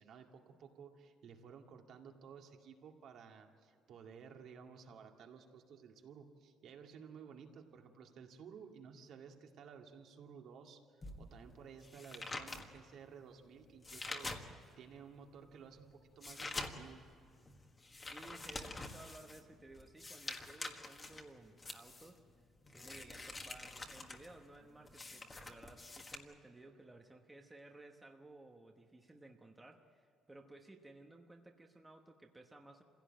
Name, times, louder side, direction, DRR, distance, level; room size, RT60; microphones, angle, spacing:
voice 1, 0.0-17.0, right 6 dB, 55° right, 3 dB, 2.2 m, -55 dB
sound 1, 11.0-14.9 15.3-26.2, left 2 dB, 20° left, 1.5 m, -47 dB
voice 2, 18.1-32.8, right 2 dB, 10° right, 2 dB, 1.1 m, -57 dB
26.5 x 16.5 x 9.0 m, 2.4 s
cardioid pair, 165°, 0 cm